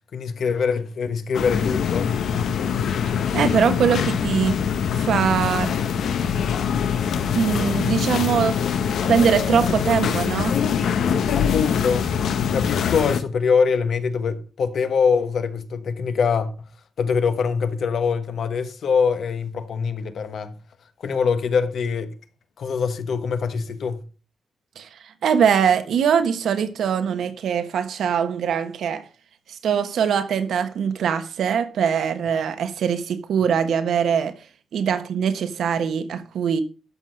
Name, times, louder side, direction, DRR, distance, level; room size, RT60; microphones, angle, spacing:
voice 1, 0.1-2.1 11.3-12.1 12.5-16.7 17.0-20.6 21.0-22.1 22.6-24.0, left 5 dB, 65° left, 1.2 m, -23 dB
sound 1, 1.3-13.2, left 7 dB, 85° left, 1.0 m, -23 dB
voice 2, 3.3-4.6 5.0-5.7 7.3-8.6 9.0-10.6 24.8-24.9 25.2-29.0 29.6-34.4 34.7-36.6, right 7 dB, 80° right, 1.3 m, -22 dB
12.5 x 6.1 x 5.3 m
wide cardioid pair, 125°, 0 cm